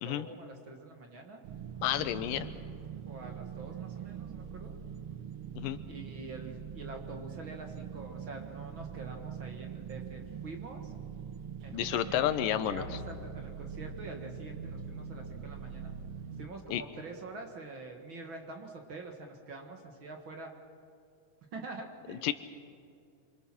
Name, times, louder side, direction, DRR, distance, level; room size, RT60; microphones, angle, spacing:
voice 1, 0.0-1.4 3.1-4.7 5.9-10.9 11.6-12.3 12.6-15.9 16.4-20.5 21.5-22.3, right 3 dB, 45° right, 3 dB, 1.9 m, -45 dB
sound 1, 1.4-16.5, right 7 dB, 90° right, 1.2 m, -43 dB
voice 2, 1.8-2.5 5.6-5.8 11.7-12.8 16.7-16.8 22.1-22.3, left 12 dB, 90° left, 12 dB, 2.6 m, -30 dB
27.0 x 25.0 x 6.1 m, 2.3 s
omnidirectional pair, 3.8 m